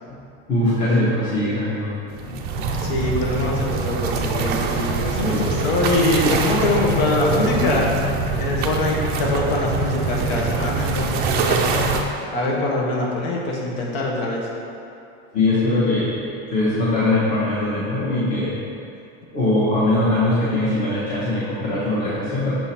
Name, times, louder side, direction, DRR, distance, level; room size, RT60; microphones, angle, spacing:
voice 1, 0.5-1.9 2.2-2.6 15.3-16.2 16.5-18.5 19.3-22.5, left 2 dB, 30° left, -10 dB, 1.1 m, -21 dB
sound 1, 2.1-12.0, right 3 dB, 35° right, 0.4 m, -24 dB
voice 2, 2.8-7.9 8.4-11.8 12.3-14.5, left 2 dB, 75° left, -3 dB, 1.3 m, -23 dB
6.0 x 3.8 x 4.3 m, 2.5 s
cardioid pair, 165°, 30 cm